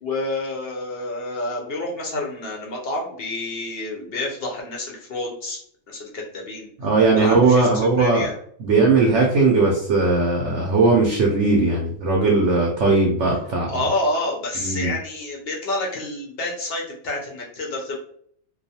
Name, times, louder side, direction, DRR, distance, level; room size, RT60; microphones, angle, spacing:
voice 1, 0.0-5.6 5.9-6.7 7.2-7.7 8.0-8.3 13.7-18.0, left 2 dB, 60° left, -1 dB, 0.6 m, -28 dB
voice 2, 6.8-8.3 8.6-13.7 14.6-14.9, right 3 dB, 65° right, -1 dB, 0.8 m, -18 dB
2.3 x 2.3 x 2.7 m, 0.63 s
omnidirectional pair, 1.5 m